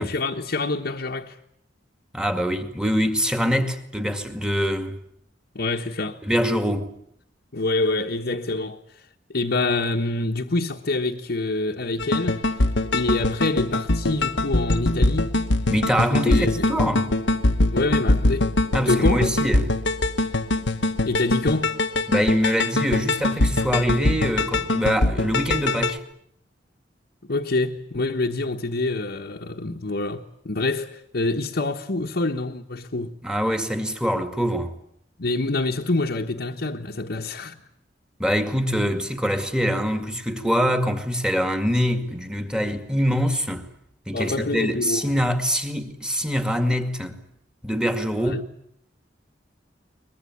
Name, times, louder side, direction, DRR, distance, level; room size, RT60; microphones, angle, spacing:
voice 1, 0.0-1.4 5.5-6.2 7.5-9.0 9.3-12.4 12.9-15.3 16.1-16.7 17.7-18.5 18.9-19.2 21.0-21.7 27.3-33.1 35.2-37.6 44.1-45.1 48.1-48.4, left 2 dB, 65° left, 1.4 m, -26 dB
voice 2, 2.1-5.0 6.2-7.0 15.7-17.2 18.7-19.8 22.1-26.0 33.2-34.7 38.2-43.7 44.1-47.2 47.6-48.4, equal, 5° right, 2.2 m, -24 dB
sound 1, 12.0-26.0, left 2 dB, 85° left, 1.3 m, -23 dB
23.0 x 21.0 x 9.6 m
head